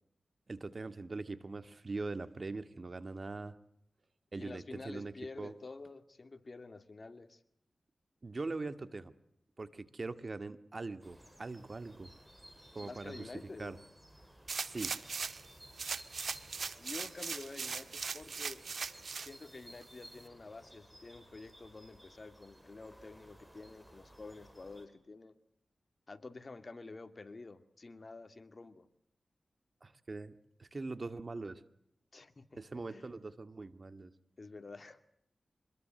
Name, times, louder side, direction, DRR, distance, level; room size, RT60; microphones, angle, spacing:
voice 1, 0.5-3.6 4.3-5.5 8.2-9.1 9.6-12.1 12.7-13.8 14.5-15.0 29.8-30.3 30.6-31.6 32.5-34.1, right 3 dB, 50° right, 12 dB, 2.0 m, -42 dB
voice 2, 4.4-7.4 12.8-13.7 16.8-18.6 19.1-25.4 26.1-28.9 32.1-33.1 34.4-35.0, left 3 dB, 50° left, 10 dB, 2.4 m, -49 dB
sound 1, 11.0-24.9, equal, 10° right, 6.7 m, -58 dB
sound 2, 14.5-15.5 15.8-19.3 19.8-19.9, right 5 dB, 75° right, 1.6 m, -39 dB
26.0 x 21.5 x 7.7 m, 0.73 s
cardioid pair, 50°, 0 cm